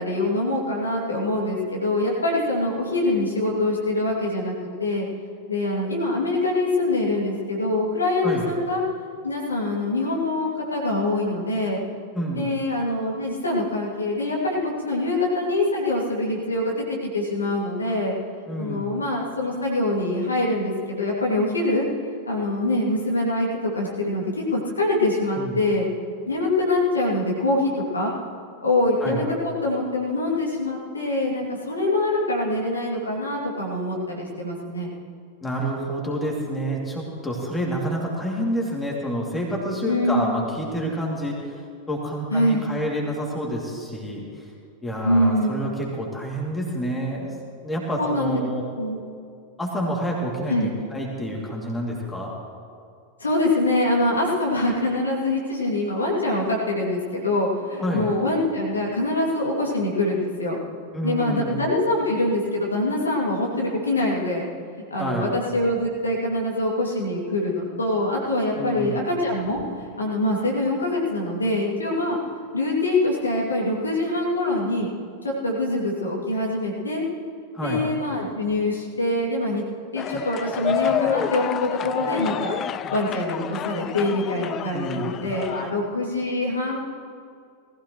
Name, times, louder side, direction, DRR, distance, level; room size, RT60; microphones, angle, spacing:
voice 1, 0.0-4.5 4.8-5.1 5.5-8.8 9.2-11.8 12.3-16.8 17.1-18.1 18.6-21.8 22.3-23.5 23.7-25.9 26.3-28.1 28.6-34.9 39.8-40.3 42.3-42.6 45.0-45.6 48.0-48.4 48.8-49.0 50.5-50.7 53.2-60.6 61.0-64.4 64.9-69.6 70.0-72.2 72.5-74.9 75.2-77.0 77.6-79.6 79.9-82.5 82.9-86.8, left 2 dB, 75° left, -3 dB, 2.8 m, -24 dB
voice 2, 12.1-12.5 18.5-18.9 25.3-25.6 29.0-29.2 35.4-41.6 41.9-44.5 44.8-47.3 47.6-48.6 49.6-52.3 57.8-58.1 60.9-61.6 65.0-65.3 68.5-69.0 77.5-77.8 84.7-85.1, equal, 10° left, -3 dB, 2.8 m, -28 dB
sound 1, 80.0-85.7, left 10 dB, 30° left, 0.3 m, -29 dB
19.5 x 15.5 x 3.2 m, 2.3 s
figure-of-eight pair, 90°, 0 cm